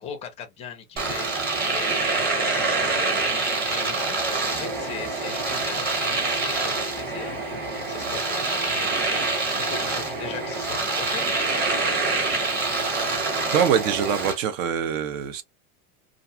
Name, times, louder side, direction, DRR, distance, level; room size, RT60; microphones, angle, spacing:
voice 1, 0.0-12.3, left 7 dB, 15° left, 0.4 m, -39 dB
Domestic sounds home sounds, 1.0-14.4, right 3 dB, 20° right, 1.1 m, -26 dB
voice 2, 13.5-15.4, right 8 dB, 60° right, 0.7 m, -24 dB
2.5 x 2.3 x 2.7 m
supercardioid pair, 145°, 44 cm